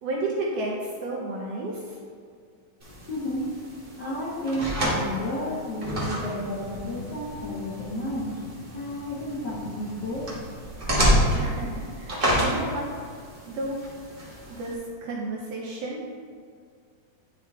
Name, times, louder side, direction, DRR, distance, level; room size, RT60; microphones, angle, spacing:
voice 1, 0.0-2.0 11.3-12.9 13.5-13.8 14.5-16.1, right 2 dB, 75° right, -3 dB, 1.5 m, -32 dB
sound 1, 2.8-14.7, equal, 50° right, 0.6 m, -29 dB
voice 2, 3.1-3.5 4.0-8.4 8.7-10.3, left 1 dB, 70° left, -7 dB, 1.0 m, -31 dB
10.5 x 3.8 x 3.4 m, 2.1 s
omnidirectional pair, 3.5 m